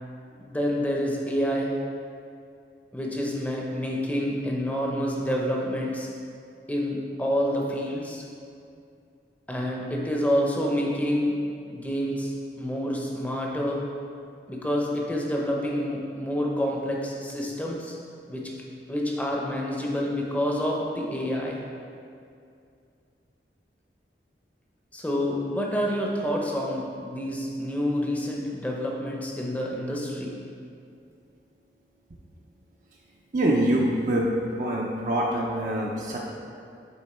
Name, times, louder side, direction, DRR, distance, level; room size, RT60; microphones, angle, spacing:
voice 1, 0.4-1.7 2.9-6.1 6.7-8.2 9.5-11.4 11.7-12.3 12.6-13.8 14.5-18.0 18.3-18.5 18.9-21.6 24.9-30.4, equal, 10° left, -2 dB, 0.7 m, -28 dB
voice 2, 33.3-34.3 34.6-36.2, right 1 dB, 45° right, -3 dB, 0.6 m, -24 dB
8.7 x 3.8 x 4.3 m, 2.4 s
head